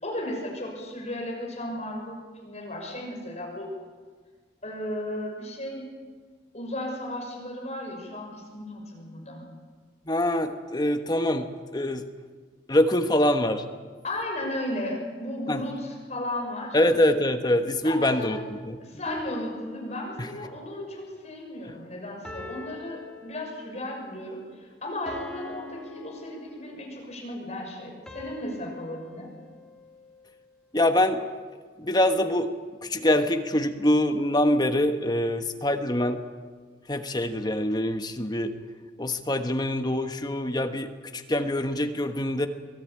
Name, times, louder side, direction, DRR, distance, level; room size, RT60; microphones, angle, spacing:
voice 1, 0.0-3.7 4.6-5.9 6.5-9.4 14.0-16.8 17.8-18.4 18.8-29.3, left 1 dB, 40° left, 0 dB, 6.2 m, -35 dB
voice 2, 10.1-12.0 12.7-13.6 15.5-15.6 16.7-19.0 20.2-20.3 30.7-31.2 31.8-32.5 32.8-36.2 36.9-38.5 39.0-42.5, left 1 dB, 25° left, 7 dB, 1.2 m, -24 dB
sound 1, 19.1-20.6 22.2-23.9 25.1-27.0 28.1-30.4, left 2 dB, 5° left, 2.4 m, -43 dB
23.5 x 15.0 x 8.8 m, 1.5 s
head